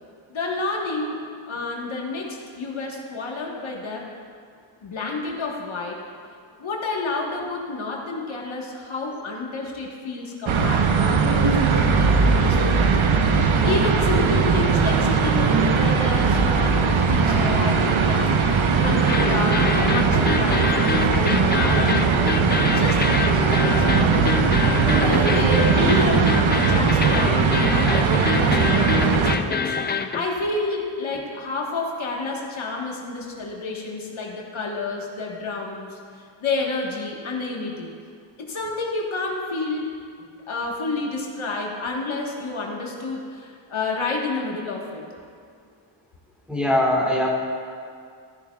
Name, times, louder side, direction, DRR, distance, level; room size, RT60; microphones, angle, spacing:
voice 1, 0.3-1.2 1.5-4.0 4.8-6.0 6.6-12.9 13.1-22.4 22.7-23.0 23.7-36.0 36.4-37.9 38.4-39.9 40.5-45.1, left 3 dB, 75° left, -1 dB, 1.5 m, -30 dB
sound 1, 10.5-29.4, right 5 dB, 80° right, 0.8 m, -19 dB
sound 2, 14.6-25.5, right 3 dB, 20° right, 1.4 m, -36 dB
sound 3, 19.1-30.2, left 5 dB, 25° left, 0.3 m, -26 dB
voice 2, 25.8-26.3 46.5-47.3, left 1 dB, ahead, -4 dB, 1.7 m, -22 dB
14.0 x 10.5 x 2.4 m, 2.2 s
wide cardioid pair, 125°, 47 cm